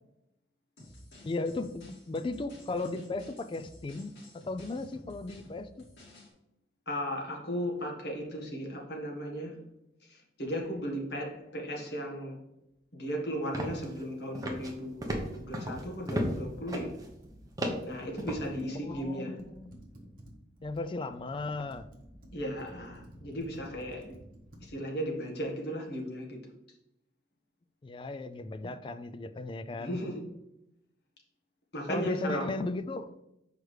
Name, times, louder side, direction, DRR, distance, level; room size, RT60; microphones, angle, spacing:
sound 1, 0.8-6.3, left 1 dB, 85° left, 2.4 m, -53 dB
voice 1, 1.2-5.7 18.8-19.9 20.6-21.9 27.8-30.0 31.9-33.1, left 2 dB, 25° left, 0.3 m, -36 dB
voice 2, 6.9-9.6 10.0-12.4 12.9-16.9 17.8-19.4 22.3-24.1 24.6-26.4 28.6-28.7 29.8-30.2 31.7-32.5, equal, 60° left, 1.5 m, -36 dB
sound 2, 13.5-14.0 14.3-14.7 15.0-16.4 16.7-17.1 17.6-18.5, equal, 20° right, 0.8 m, -34 dB
Computer keyboard, 14.9-19.1 19.4-24.7, equal, 50° right, 1.2 m, -52 dB
6.3 x 4.9 x 3.2 m
head